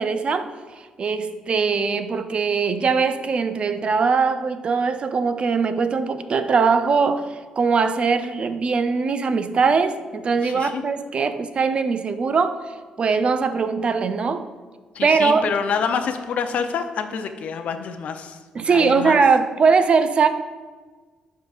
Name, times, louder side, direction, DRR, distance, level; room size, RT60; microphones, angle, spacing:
voice 1, 0.0-14.5 15.0-15.4 18.5-20.3, right 5 dB, 45° right, 10 dB, 0.4 m, -21 dB
voice 2, 10.4-10.8 14.9-18.4 18.6-19.2, left 6 dB, 70° left, 7 dB, 0.5 m, -27 dB
10.5 x 3.8 x 2.4 m, 1.4 s
cardioid pair, 75°, 3 cm